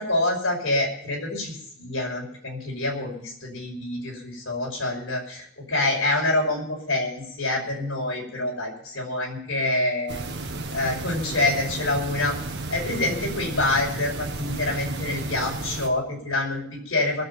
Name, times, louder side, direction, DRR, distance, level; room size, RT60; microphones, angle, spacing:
voice 1, 0.0-10.2 10.7-12.4 12.7-17.2, left 2 dB, 65° left, -1 dB, 5.6 m, -26 dB
sound 1, 10.1-15.9, right 2 dB, 55° right, 1.6 m, -33 dB
21.0 x 7.4 x 7.2 m, 0.66 s
head